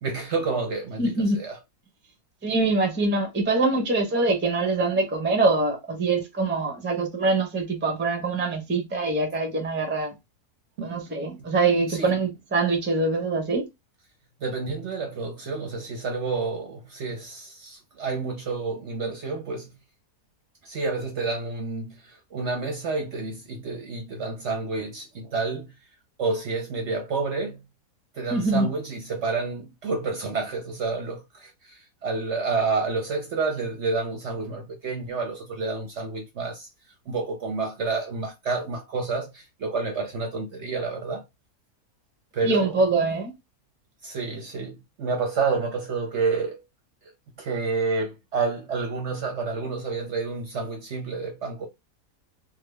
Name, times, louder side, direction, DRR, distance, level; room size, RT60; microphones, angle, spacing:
voice 1, 0.0-1.6 10.8-11.0 11.9-12.2 14.4-19.7 20.6-25.7 26.2-27.6 28.1-36.7 37.1-41.2 42.3-42.8 44.0-46.6 47.0-47.1 47.4-51.7, right 4 dB, 60° right, 0.8 m, -29 dB
voice 2, 1.0-1.4 2.4-10.1 10.8-13.7 28.3-28.7 42.4-43.3, right 3 dB, 15° right, 0.4 m, -24 dB
3.6 x 2.1 x 3.3 m
omnidirectional pair, 1.7 m